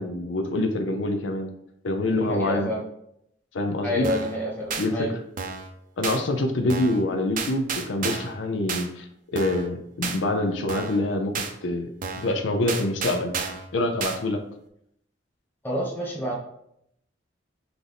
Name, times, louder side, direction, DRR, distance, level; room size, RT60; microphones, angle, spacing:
voice 1, 0.0-1.5 1.8-2.7 3.5-4.1 4.8-5.2 6.0-11.9 12.2-13.3 13.7-14.4, left 2 dB, 85° left, 5 dB, 0.5 m, -26 dB
voice 2, 2.1-2.8 3.8-5.1 15.6-16.3, equal, 10° left, -4 dB, 1.2 m, -28 dB
sound 1, 4.0-4.4 4.7-4.9 5.4-5.7 6.0-6.2 6.7-7.0 7.4-8.4 8.7-8.9 9.4-9.7 10.0-10.2 10.7-11.0 11.3-11.5 12.0-12.3 12.7-13.7 14.0-14.2, right 5 dB, 45° right, 0.5 m, -31 dB
5.9 x 2.6 x 3.4 m, 0.75 s
head